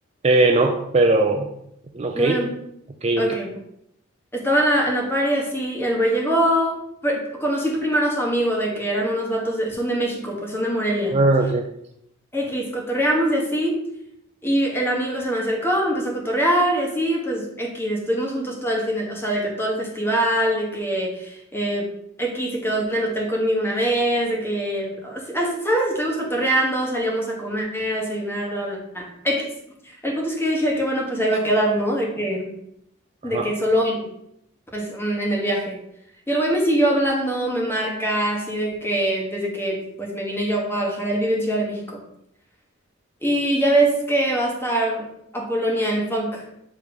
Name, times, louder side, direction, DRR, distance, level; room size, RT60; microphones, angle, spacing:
voice 1, 0.2-1.5 1.9-2.3 3.0-3.3 11.1-11.6 33.2-33.5, right 2 dB, 30° right, 4 dB, 0.4 m, -19 dB
voice 2, 2.1-2.5 3.2-3.5 4.3-6.8 7.0-11.1 12.3-13.8 14.4-21.9 22.2-29.5 29.8-32.5 33.2-34.1 34.7-35.8 36.3-42.0 43.2-45.1 45.3-46.4, right 1 dB, 10° left, -1 dB, 1.3 m, -23 dB
7.1 x 3.1 x 5.1 m, 0.76 s
head